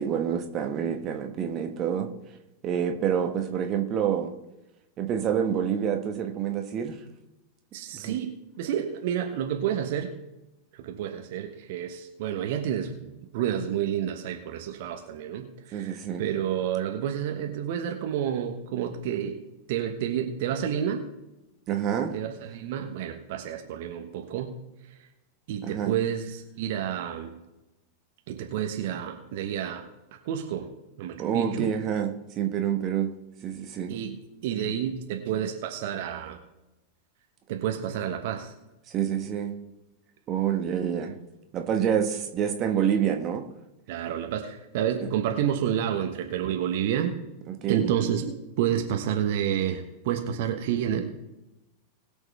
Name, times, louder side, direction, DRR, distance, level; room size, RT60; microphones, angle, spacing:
voice 1, 0.0-2.1 2.6-4.3 5.0-7.0 7.9-8.2 15.7-16.3 21.7-22.2 25.6-26.0 31.2-33.1 33.4-34.0 38.9-39.5 40.3-41.2 41.5-43.4 45.0-45.1 47.5-47.9, right 8 dB, 35° right, 1.4 m, -27 dB
voice 2, 7.7-10.1 10.8-19.4 19.7-21.0 22.1-24.6 25.5-27.3 28.3-29.9 30.2-30.7 31.0-31.7 33.9-34.2 34.4-36.4 37.5-38.5 43.9-47.2 47.7-51.1, right 9 dB, 50° right, 1.2 m, -29 dB
21.0 x 7.1 x 3.3 m
figure-of-eight pair, 90°, 0 cm